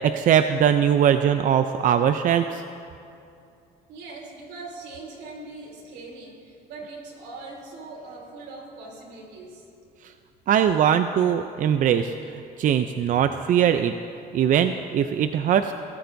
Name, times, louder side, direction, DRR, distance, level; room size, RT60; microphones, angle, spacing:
voice 1, 0.0-2.6 10.5-12.1 12.6-13.9 14.3-15.7, right 9 dB, 50° right, 9 dB, 0.5 m, -21 dB
voice 2, 3.9-9.7 13.1-13.6, right 3 dB, 85° right, -1 dB, 3.1 m, -41 dB
22.5 x 13.5 x 2.6 m, 2.6 s
cardioid pair, 110°, 17 cm